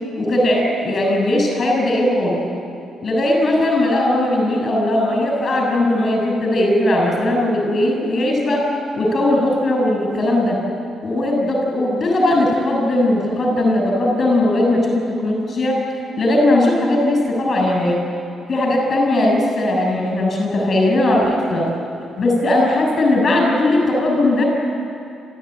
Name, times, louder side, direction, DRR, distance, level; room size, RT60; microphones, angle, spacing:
voice 1, 0.2-2.4 3.0-8.6 9.0-10.6 11.0-15.8 16.2-18.0 18.5-21.7 22.2-24.4, left 1 dB, 45° left, 0 dB, 7.3 m, -18 dB
29.5 x 14.5 x 9.6 m, 2.6 s
cardioid pair, 90°, 0 cm